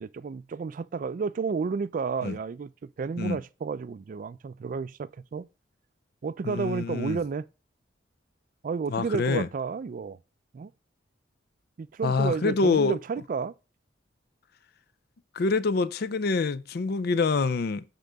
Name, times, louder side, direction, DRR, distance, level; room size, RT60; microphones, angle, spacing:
voice 1, 0.0-5.5 6.2-7.5 8.6-10.2 10.5-10.7 11.8-13.5, right 5 dB, 45° right, 0.3 m, -31 dB
voice 2, 6.4-7.2 8.9-9.5 12.0-13.0 15.3-17.8, left 4 dB, 55° left, 0.4 m, -26 dB
9.2 x 3.8 x 3.4 m
head